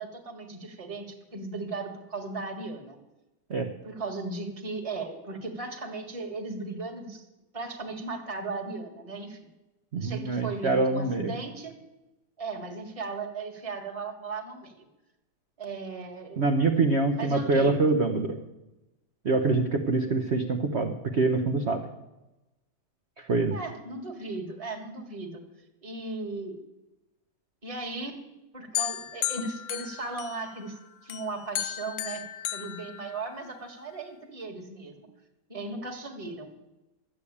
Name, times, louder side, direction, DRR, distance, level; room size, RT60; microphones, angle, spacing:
voice 1, 0.0-3.0 3.8-7.2 7.5-9.4 9.9-11.8 12.4-14.8 15.6-16.4 17.1-17.9 23.5-25.4 25.8-26.6 27.6-28.2 28.5-30.8 31.0-32.2 32.5-35.1 35.5-36.5, right 3 dB, 20° right, 1 dB, 1.7 m, -37 dB
voice 2, 9.9-11.3 16.4-18.4 19.2-21.8 23.2-23.5, right 3 dB, 50° right, 4 dB, 0.9 m, -25 dB
sound 1, 28.7-30.7 31.1-33.6, left 12 dB, 70° left, 0.7 m, -35 dB
12.5 x 8.3 x 8.5 m, 1.0 s
omnidirectional pair, 1.9 m